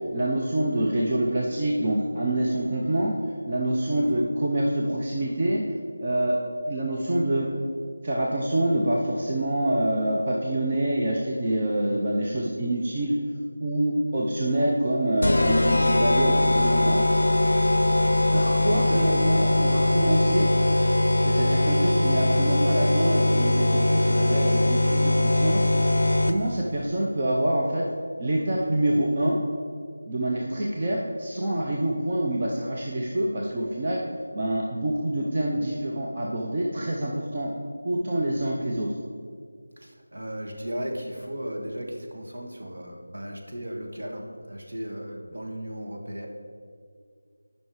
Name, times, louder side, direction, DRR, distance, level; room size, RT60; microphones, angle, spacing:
voice 1, 0.1-3.1 3.5-5.6 6.0-6.4 6.7-7.5 8.0-13.1 13.6-17.0 18.3-20.5 21.2-25.7 26.2-27.8 28.2-29.4 30.1-34.0 34.3-37.5 37.8-38.9, right 1 dB, 20° right, -3 dB, 0.5 m, -26 dB
voice 2, 3.9-4.2 18.8-19.3 39.8-46.3, equal, 65° right, 0 dB, 1.5 m, -36 dB
sound 1, 15.2-26.6, left 1 dB, 60° left, 0.5 m, -21 dB
9.6 x 5.5 x 4.7 m, 2.1 s
figure-of-eight pair, 180°, 0 cm